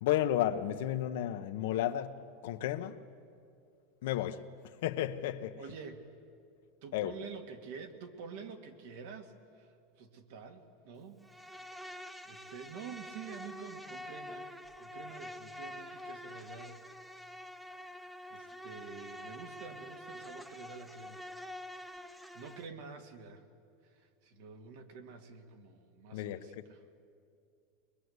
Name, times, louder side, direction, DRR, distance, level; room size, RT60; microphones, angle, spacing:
voice 1, 0.0-3.0 4.0-4.5 4.8-5.6 6.9-7.1 26.1-26.6, left 12 dB, 75° left, 1.0 m, -33 dB
voice 2, 5.6-6.1 6.8-11.2 12.2-16.9 18.3-21.2 22.0-23.4 23.8-26.8, right 5 dB, 70° right, 2.2 m, -48 dB
Insect, 11.2-22.7, left 1 dB, 5° right, 0.8 m, -47 dB
22.0 x 22.0 x 8.1 m
supercardioid pair, 140°, 0 cm